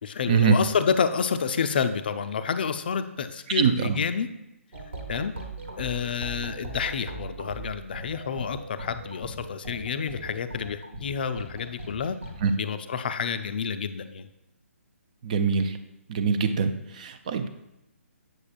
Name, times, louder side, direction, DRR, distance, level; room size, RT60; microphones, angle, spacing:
voice 1, 0.0-4.3 5.1-5.3 5.8-12.2 12.6-14.3, left 6 dB, 40° left, 10 dB, 0.4 m, -29 dB
voice 2, 3.6-4.0 12.4-12.5 15.2-15.8 16.1-17.5, right 6 dB, 30° right, 9 dB, 0.4 m, -23 dB
sound 1, 4.7-12.5, right 2 dB, 55° right, 1.2 m, -39 dB
7.9 x 7.2 x 2.4 m, 0.89 s
figure-of-eight pair, 135°, 8 cm